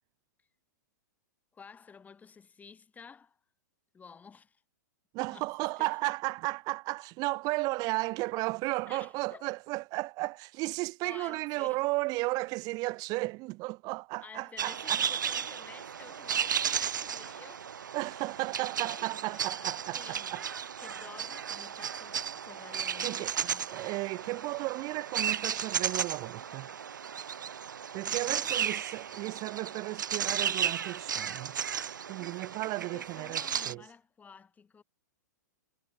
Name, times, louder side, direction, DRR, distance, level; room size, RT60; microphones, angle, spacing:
voice 1, 1.5-3.4 3.9-4.6 5.3-5.5 5.8-6.1 8.9-9.5 11.0-11.9 14.2-17.7 18.8-20.5 20.8-23.7 28.3-28.8 29.2-29.5 32.2-34.8, left 6 dB, 15° left, 7.2 m, -52 dB
voice 2, 5.1-15.0 17.9-20.5 23.0-23.3 23.7-26.7 27.9-31.6 32.1-33.8, right 23 dB, 40° right, 1.8 m, -34 dB
sound 1, 14.6-33.7, right 8 dB, 90° right, 0.4 m, -34 dB
hypercardioid pair, 115°, 10 cm